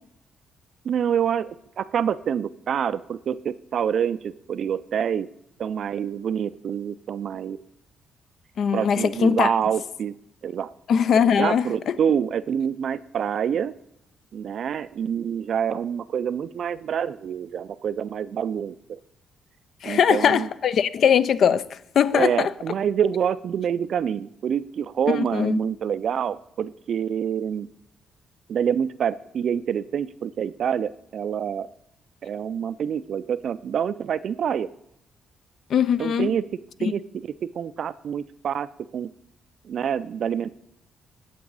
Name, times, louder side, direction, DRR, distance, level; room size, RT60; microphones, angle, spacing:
voice 1, 0.8-5.3 5.6-7.6 8.7-10.1 10.4-10.7 11.3-13.7 14.3-19.0 19.8-20.5 22.1-27.7 28.5-31.7 32.2-34.7 36.0-36.4 36.8-37.3 37.6-39.1 39.6-40.5, right 8 dB, 60° right, 0.3 m, -27 dB
voice 2, 8.6-9.5 10.9-11.9 19.8-22.5 25.1-25.6 35.7-36.3 36.8-36.9, left 7 dB, 60° left, 0.4 m, -21 dB
8.5 x 7.4 x 4.0 m
cardioid pair, 90°, 0 cm